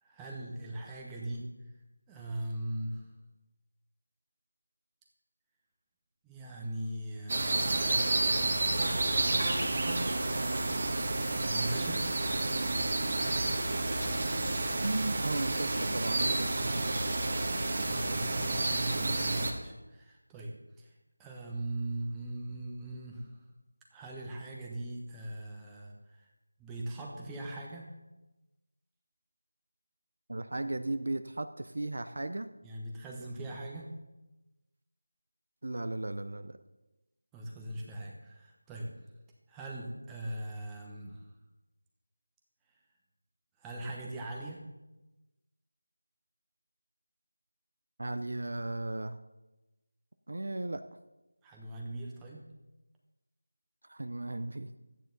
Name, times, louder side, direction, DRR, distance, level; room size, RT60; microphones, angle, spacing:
voice 1, 0.0-1.5 2.1-3.0 6.2-7.8 9.2-9.8 11.4-12.0 17.8-20.9 21.2-23.3 23.9-26.3 26.6-27.9 32.6-33.9 37.3-38.9 39.5-41.2 43.6-44.6 51.4-52.4, right 1 dB, 5° right, -2 dB, 1.1 m, -40 dB
sound 1, 7.3-19.5, right 2 dB, 40° right, 1.4 m, -30 dB
voice 2, 14.8-17.1 30.3-32.5 35.6-36.6 48.0-49.2 50.3-50.8 53.9-54.7, right 2 dB, 60° right, 10 dB, 0.6 m, -36 dB
13.5 x 9.3 x 4.0 m, 1.1 s
figure-of-eight pair, 170°, 0 cm